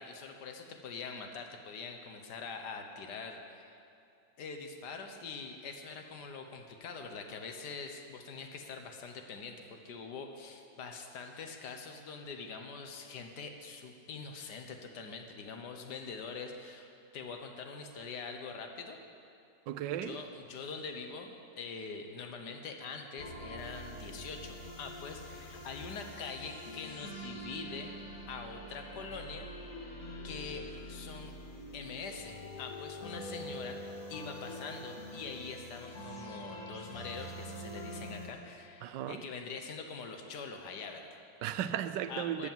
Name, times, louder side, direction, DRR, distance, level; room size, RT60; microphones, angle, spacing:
voice 1, 0.0-3.7 4.4-19.0 20.0-27.9 28.3-29.5 30.2-31.3 31.7-33.8 34.1-41.2 42.1-42.5, left 4 dB, 70° left, 5 dB, 1.6 m, -44 dB
voice 2, 19.7-20.2 38.8-39.3 41.4-42.5, right 10 dB, 80° right, 11 dB, 1.3 m, -35 dB
sound 1, 23.2-38.3, equal, 50° left, 1.9 m, -45 dB
13.0 x 8.3 x 7.3 m, 2.7 s
omnidirectional pair, 1.9 m